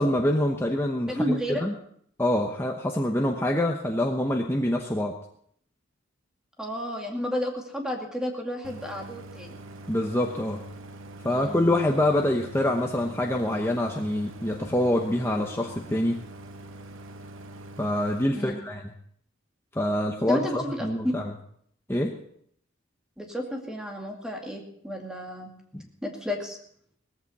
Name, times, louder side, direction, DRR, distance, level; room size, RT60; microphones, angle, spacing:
voice 1, 0.0-1.7 2.2-5.2 9.9-10.6 11.2-16.2 17.8-18.8 19.7-21.3 21.9-22.2 25.7-25.8, left 1 dB, 10° left, 1 dB, 0.9 m, -25 dB
voice 2, 1.1-1.6 6.6-9.6 11.3-11.6 18.3-18.6 20.3-21.1 23.2-25.5 26.0-26.6, equal, 5° right, 1 dB, 2.1 m, -31 dB
Idling, 8.6-18.2, right 1 dB, 75° right, 1.0 m, -44 dB
18.0 x 14.5 x 4.2 m, 0.66 s
head